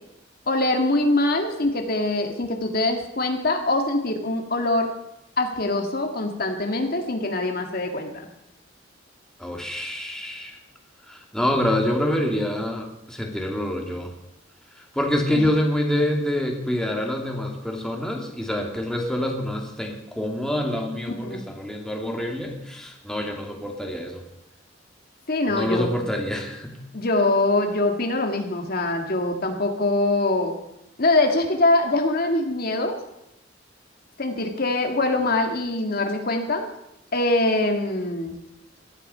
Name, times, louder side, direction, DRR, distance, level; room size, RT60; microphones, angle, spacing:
voice 1, 0.5-4.9 5.4-8.3 15.3-15.5 21.2-21.4 25.3-26.1 26.9-30.6 31.0-33.0 34.2-36.7 37.1-38.3, left 2 dB, 55° left, 4 dB, 1.8 m, -23 dB
voice 2, 9.4-10.6 11.1-14.1 14.9-24.2 25.5-26.8, left 1 dB, 5° left, 1 dB, 2.3 m, -26 dB
17.5 x 12.5 x 5.5 m, 0.87 s
head